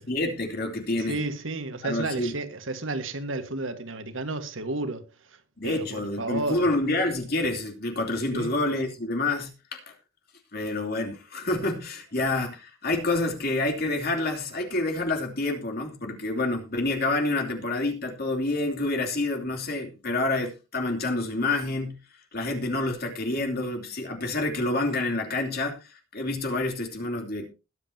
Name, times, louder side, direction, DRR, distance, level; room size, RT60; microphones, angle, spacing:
voice 1, 0.1-1.2 1.8-2.3 5.6-9.9 10.5-22.0 22.3-27.5, left 2 dB, 50° left, 2.9 m, -28 dB
voice 2, 1.1-5.0 5.6-6.7 8.3-8.6, right 2 dB, 85° right, 1.6 m, -32 dB
21.0 x 7.8 x 2.8 m
head